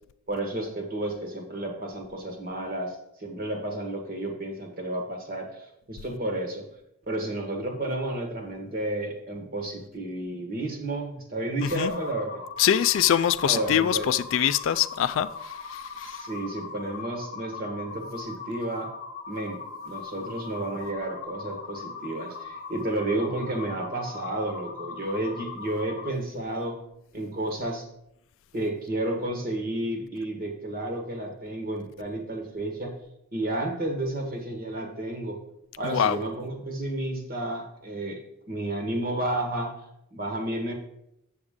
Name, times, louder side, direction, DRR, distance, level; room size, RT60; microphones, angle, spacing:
voice 1, 0.3-6.6 7.1-12.4 13.2-14.1 16.1-18.9 19.3-19.6 19.8-26.8 27.1-27.9 28.5-32.9 33.3-35.4 35.8-38.2 38.5-39.7 40.1-40.7, right 1 dB, 40° right, 1.5 m, -31 dB
sound 1, 11.6-26.1, left 5 dB, 40° left, 1.0 m, -40 dB
voice 2, 12.6-16.3 35.8-36.2, left 10 dB, 65° left, 0.3 m, -24 dB
7.8 x 7.1 x 3.7 m
head